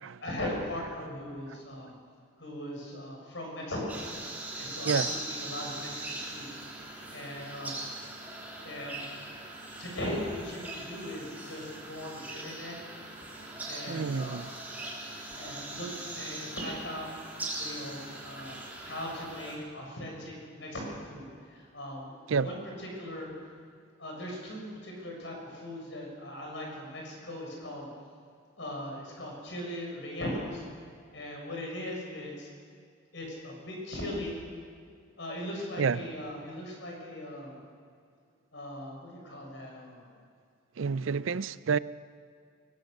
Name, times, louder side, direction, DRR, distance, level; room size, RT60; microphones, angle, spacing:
voice 1, 0.2-1.9 2.4-4.1 4.5-6.6 7.1-7.8 8.6-9.1 9.8-12.8 13.7-14.5 15.4-17.1 17.6-23.3 24.0-27.9 28.6-30.6 31.1-32.5 33.1-34.4 35.2-37.6 38.5-40.1, left 1 dB, 65° left, 6.5 m, -39 dB
sound 1, 3.9-19.6, right 2 dB, 10° right, 3.5 m, -40 dB
voice 2, 13.9-14.5 22.3-22.5 35.8-36.0 40.8-41.8, right 5 dB, 80° right, 0.5 m, -29 dB
22.5 x 18.0 x 6.6 m
head